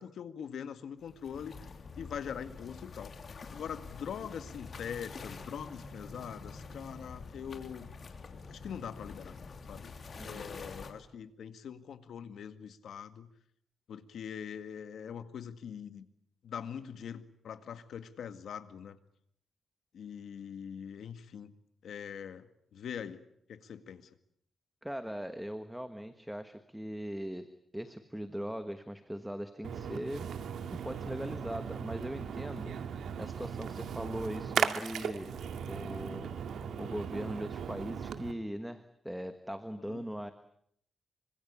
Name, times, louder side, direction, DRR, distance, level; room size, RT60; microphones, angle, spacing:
voice 1, 0.0-1.5 2.0-3.1 3.5-8.0 8.5-9.4 9.7-9.9 10.2-13.3 13.9-16.1 16.4-19.0 19.9-21.5 21.8-22.5 22.7-23.2 23.5-24.1 39.8-40.0, left 8 dB, 75° left, 10 dB, 1.9 m, -43 dB
sound 1, 1.0-10.9, left 4 dB, 40° left, 3.1 m, -47 dB
voice 2, 10.2-10.5 24.8-27.5 27.7-30.3 30.7-32.7 33.2-35.3 35.7-36.3 36.8-40.3, equal, ahead, 9 dB, 1.3 m, -40 dB
Splash splatter, 29.6-38.3, right 7 dB, 90° right, 2.0 m, -37 dB
26.5 x 25.0 x 8.6 m, 0.69 s
wide cardioid pair, 180°, 0 cm